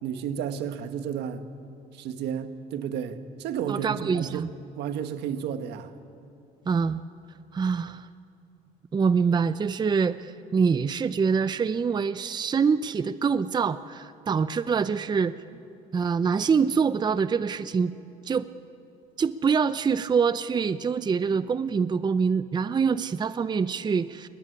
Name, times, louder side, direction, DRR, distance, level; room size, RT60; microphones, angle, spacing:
voice 1, 0.0-1.4 1.9-4.5 4.7-5.9, right 8 dB, 80° right, 8 dB, 1.5 m, -32 dB
voice 2, 3.7-4.5 6.7-7.0 7.5-8.1 8.9-15.3 15.9-17.9 18.3-18.5 19.2-24.3, right 6 dB, 25° right, 14 dB, 0.6 m, -25 dB
22.0 x 19.0 x 10.0 m, 2.7 s
cardioid pair, 110°, 17 cm